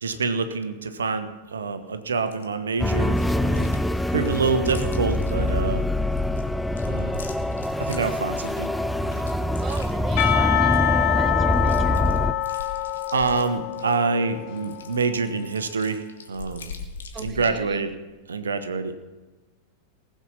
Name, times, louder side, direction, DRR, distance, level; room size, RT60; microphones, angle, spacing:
voice 1, 0.0-3.8 4.1-5.8 6.8-7.2 7.8-8.7 12.5-12.8 13.1-16.7 17.2-17.9 18.3-18.9, right 4 dB, 70° right, 9 dB, 1.3 m, -26 dB
Chewing mastication, 2.3-2.4 3.1-3.8 4.1-5.6 6.1-8.7 9.1-11.0 11.2-11.3 11.5-14.0 14.6-17.6, left 5 dB, 65° left, 2.2 m, -41 dB
sound 1, 2.8-12.3, left 1 dB, 5° left, 0.5 m, -24 dB
voice 2, 9.6-12.1 17.1-17.9, right 6 dB, 25° right, 10 dB, 1.2 m, -39 dB
Percussion, 10.2-15.0, left 13 dB, 45° left, 1.7 m, -26 dB
19.5 x 7.7 x 5.6 m, 1.2 s
figure-of-eight pair, 90°, 0 cm